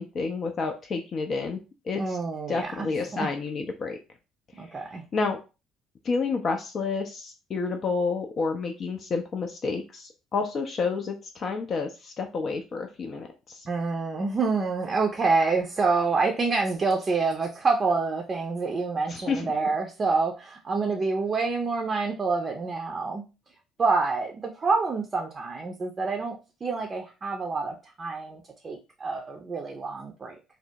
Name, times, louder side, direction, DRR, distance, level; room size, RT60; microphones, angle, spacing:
voice 1, 0.0-1.6 1.8-2.2 2.5-4.0 4.6-4.8 5.1-5.4 6.0-13.7 19.1-19.4, left 4 dB, 40° left, 3 dB, 0.5 m, -30 dB
voice 2, 2.0-3.3 4.6-5.0 13.7-23.3 23.8-30.4, right 4 dB, 30° right, 1 dB, 0.6 m, -27 dB
3.4 x 2.0 x 2.8 m, 0.30 s
figure-of-eight pair, 50°, 0 cm